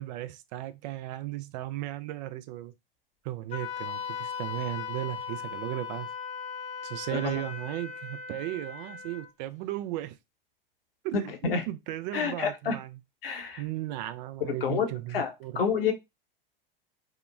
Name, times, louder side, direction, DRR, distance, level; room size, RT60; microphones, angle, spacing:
voice 1, 0.0-2.7 3.2-6.1 6.8-10.2 11.0-13.0 13.6-15.6, right 15 dB, 50° right, 0.4 m, -36 dB
Wind instrument woodwind instrument, 3.5-9.3, left 6 dB, 25° left, 0.5 m, -38 dB
voice 2, 11.1-11.6 12.1-12.7 13.2-13.6 14.6-15.9, left 6 dB, 75° left, 0.8 m, -29 dB
2.8 x 2.1 x 2.3 m
hypercardioid pair, 95°, 29 cm